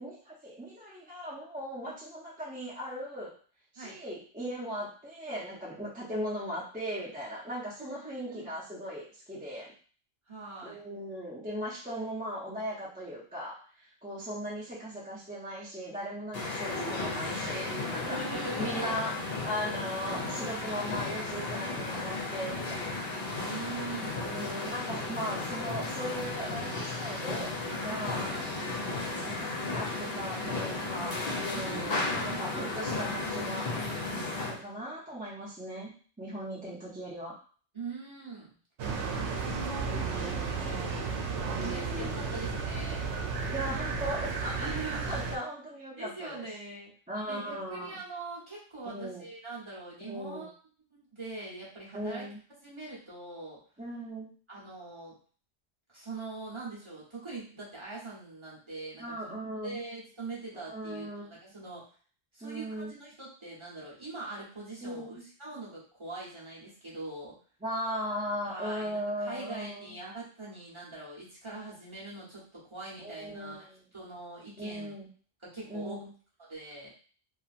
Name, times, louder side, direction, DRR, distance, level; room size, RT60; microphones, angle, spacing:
voice 1, 0.0-3.3 3.7-9.7 10.6-18.2 18.6-19.1 19.4-23.0 24.2-27.5 27.8-28.2 29.2-33.7 34.4-35.9 36.2-37.3 39.9-40.6 41.4-42.2 43.5-46.5 47.1-48.0 48.9-49.2 50.0-50.5 51.9-52.4 53.8-54.3 59.0-59.8 60.5-61.3 62.4-62.9 64.8-65.2 67.6-69.9 73.0-73.8 74.6-75.1 75.7-76.1, equal, 10° right, -7 dB, 0.4 m, -38 dB
voice 2, 7.8-8.5 10.3-10.8 18.0-19.1 23.4-24.3 27.9-28.5 31.5-32.6 37.7-38.6 38.9-41.1 41.6-43.0 44.5-45.1 46.0-46.9 47.3-50.5 50.9-52.3 52.6-53.6 54.5-55.2 55.9-61.8 62.3-67.3 68.4-74.9 75.4-76.1 76.4-76.9, right 3 dB, 25° right, -7 dB, 0.9 m, -43 dB
sound 1, 16.3-34.6, left 2 dB, 60° left, 0.9 m, -34 dB
sound 2, 38.8-45.4, right 4 dB, 80° right, 0.9 m, -33 dB
2.8 x 2.4 x 2.4 m, 0.42 s
omnidirectional pair, 1.2 m